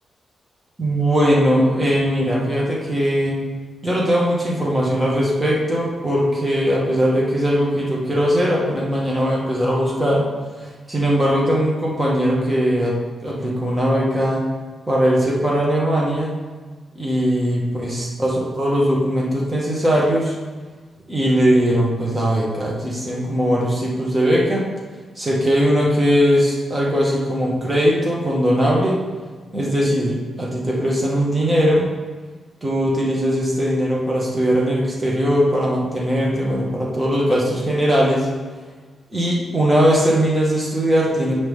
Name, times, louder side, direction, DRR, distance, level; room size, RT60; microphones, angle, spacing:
voice 1, 0.8-3.4 3.8-10.3 10.9-12.9 13.2-14.4 14.9-16.3 17.0-20.3 21.1-24.6 25.2-28.9 29.5-31.9 32.6-38.3 39.1-41.3, equal, 15° right, -4 dB, 2.0 m, -19 dB
8.5 x 5.2 x 3.8 m, 1.4 s
cardioid pair, 90°, 0 cm